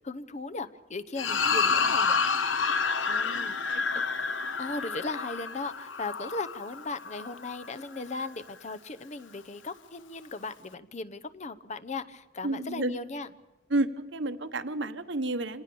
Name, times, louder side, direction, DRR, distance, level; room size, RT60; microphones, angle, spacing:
voice 1, 0.0-2.2 3.1-3.6 3.9-4.0 4.6-13.3, left 3 dB, 40° left, 11 dB, 0.8 m, -37 dB
sound 1, 1.2-7.7, left 5 dB, 80° left, 1.1 m, -29 dB
voice 2, 12.4-13.0 13.7-15.6, right 2 dB, 70° right, 10 dB, 1.2 m, -31 dB
26.0 x 19.0 x 7.0 m, 1.1 s
head